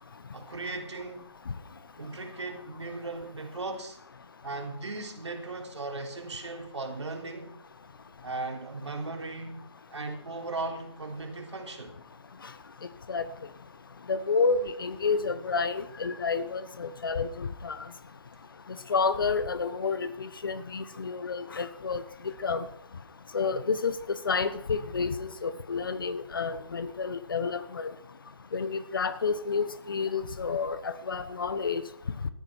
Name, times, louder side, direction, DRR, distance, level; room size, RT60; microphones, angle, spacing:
voice 1, 0.3-1.3 2.0-4.0 4.4-7.5 8.2-9.6 9.9-12.0, right 3 dB, 80° right, 3 dB, 3.7 m, -37 dB
voice 2, 14.1-17.8 18.9-22.7 23.3-27.9 28.5-31.8, left 5 dB, 50° left, 13 dB, 1.2 m, -30 dB
13.0 x 9.9 x 6.2 m, 0.71 s
hypercardioid pair, 170°, 15 cm